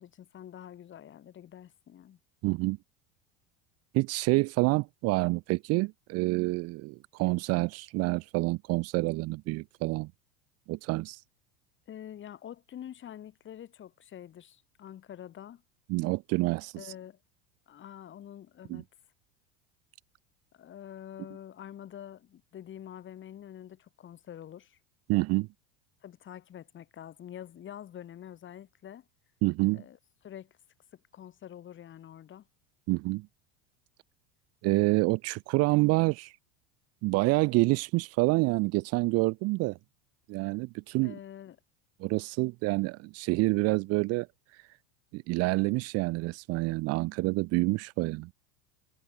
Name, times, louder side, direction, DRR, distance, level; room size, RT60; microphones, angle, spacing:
voice 1, 0.0-2.2 11.9-15.6 16.8-17.2 17.7-18.9 20.5-24.8 26.0-29.1 29.7-30.0 30.2-30.6 30.9-32.5 41.0-41.6, left 10 dB, 35° left, 7.5 m, -46 dB
voice 2, 2.4-2.8 3.9-10.1 10.7-11.2 15.9-16.9 18.7-18.8 25.1-25.5 29.4-29.8 32.9-33.3 34.6-36.3 37.0-39.8 40.3-41.2 42.0-44.3 45.1-48.3, right 23 dB, 50° right, 0.6 m, -27 dB
supercardioid pair, 120°, 33 cm